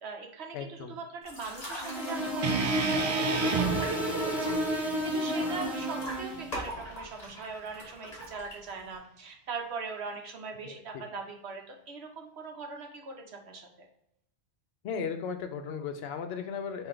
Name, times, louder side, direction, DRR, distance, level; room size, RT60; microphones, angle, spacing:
voice 1, 0.0-13.9, right 4 dB, 80° right, 2 dB, 1.1 m, -41 dB
voice 2, 0.5-1.0 10.6-11.0 14.8-16.9, left 6 dB, 75° left, 7 dB, 0.8 m, -36 dB
sound 1, 1.2-9.0, equal, 40° left, 1.2 m, -44 dB
sound 2, 1.8-6.6, equal, ahead, 1.0 m, -31 dB
sound 3, 2.4-6.6, right 5 dB, 55° right, 0.4 m, -33 dB
4.3 x 2.8 x 3.8 m, 0.77 s
omnidirectional pair, 1.1 m